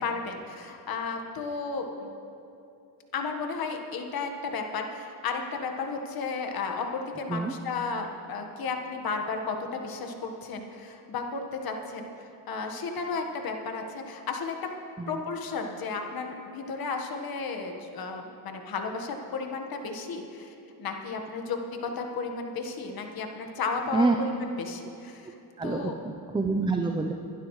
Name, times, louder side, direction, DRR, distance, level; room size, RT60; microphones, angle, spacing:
voice 1, 0.0-2.1 3.1-12.1 12.5-14.5 15.1-25.3 25.6-26.0, left 4 dB, 60° left, 3 dB, 1.6 m, -33 dB
voice 2, 25.6-27.1, right 3 dB, 10° right, 4 dB, 0.6 m, -27 dB
22.0 x 12.0 x 3.2 m, 2.8 s
cardioid pair, 105°, 41 cm